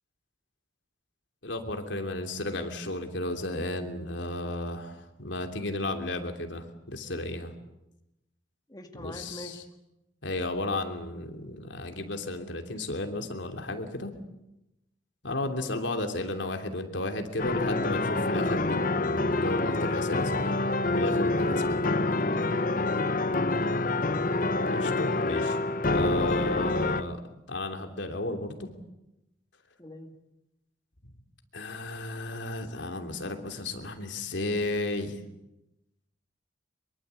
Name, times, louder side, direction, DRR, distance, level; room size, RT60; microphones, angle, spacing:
voice 1, 1.4-7.5 8.9-9.6 10.2-14.1 15.2-20.6 20.9-21.8 24.7-25.6 25.9-27.2 27.5-28.7 31.5-35.2, left 2 dB, 75° left, 5 dB, 3.1 m, -33 dB
voice 2, 8.7-9.6 29.8-30.1, equal, 20° left, 4 dB, 2.4 m, -44 dB
sound 1, 17.4-27.0, left 2 dB, 45° left, 1.1 m, -27 dB
24.0 x 23.5 x 8.3 m, 0.90 s
head